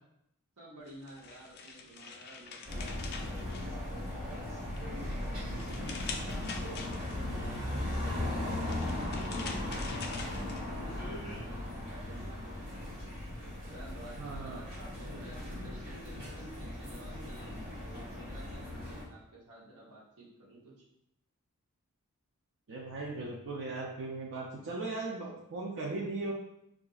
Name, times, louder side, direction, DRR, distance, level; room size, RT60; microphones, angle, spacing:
voice 1, 0.6-4.7 5.1-13.1 13.7-20.8, right 2 dB, 80° right, -4 dB, 0.9 m, -53 dB
sound 1, 0.9-4.2 4.6-7.4 8.3-11.0, left 5 dB, 45° left, 0.4 m, -45 dB
sound 2, 2.7-19.0, left 1 dB, 40° right, 1.2 m, -38 dB
voice 2, 14.2-14.6 22.7-26.3, right 3 dB, 60° right, -2 dB, 0.4 m, -38 dB
3.8 x 2.5 x 2.3 m, 0.79 s
head